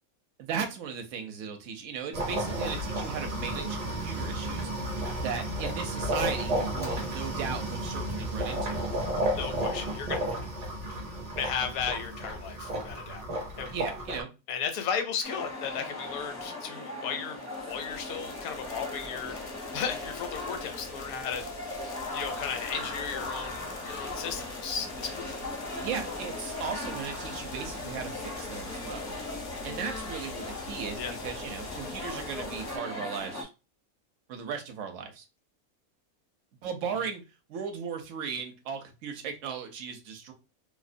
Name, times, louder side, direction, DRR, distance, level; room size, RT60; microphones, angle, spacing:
voice 1, 0.4-4.7 5.2-8.8 13.7-14.3 25.8-29.1 29.6-33.5 34.3-35.2 36.6-37.2 37.5-40.3, right 6 dB, 70° right, 0.9 m, -36 dB
sound 1, 2.1-14.2, right 1 dB, 40° right, 0.6 m, -32 dB
voice 2, 9.3-10.2 11.4-13.2 13.6-13.8 14.5-19.4 19.7-25.4 31.0-31.1, left 7 dB, 80° left, 1.0 m, -35 dB
sound 2, 15.2-33.4, left 2 dB, 20° left, 0.4 m, -39 dB
sound 3, 17.4-32.8, left 3 dB, 65° left, 0.6 m, -44 dB
2.5 x 2.0 x 2.5 m
omnidirectional pair, 1.5 m